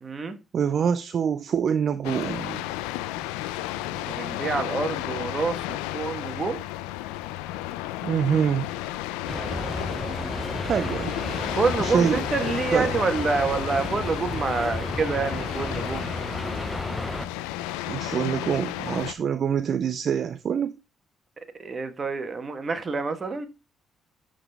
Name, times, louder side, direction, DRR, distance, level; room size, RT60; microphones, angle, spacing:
voice 1, 0.0-0.4 3.9-6.6 9.6-9.8 10.3-10.7 11.6-16.1 21.6-23.5, right 4 dB, 40° right, 1.4 m, -27 dB
voice 2, 0.5-2.6 8.0-8.7 10.6-11.1 11.8-12.2 12.7-12.9 17.9-20.7, right 7 dB, 60° right, 0.4 m, -25 dB
sound 1, 2.0-19.1, left 15 dB, 90° left, 0.3 m, -33 dB
sound 2, 9.3-17.3, left 1 dB, 10° left, 0.6 m, -33 dB
12.0 x 4.0 x 3.5 m
supercardioid pair, 55°, 0 cm